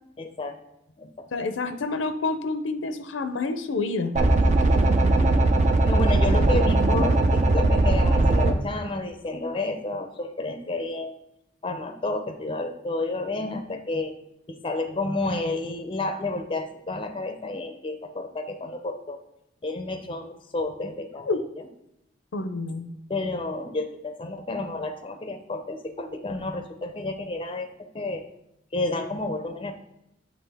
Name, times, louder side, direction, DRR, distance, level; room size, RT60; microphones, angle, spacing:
voice 1, 0.2-0.6 1.0-1.3 5.8-11.2 11.6-14.1 14.5-19.2 19.6-21.4 23.1-27.7 27.9-28.2 28.7-29.7, left 2 dB, 30° left, 7 dB, 0.5 m, -30 dB
voice 2, 1.3-4.1 21.3-21.4 22.3-22.8, left 3 dB, 90° left, 9 dB, 0.6 m, -28 dB
sound 1, 4.2-8.5, right 2 dB, 40° right, 0.5 m, -19 dB
7.5 x 3.6 x 3.4 m, 0.82 s
head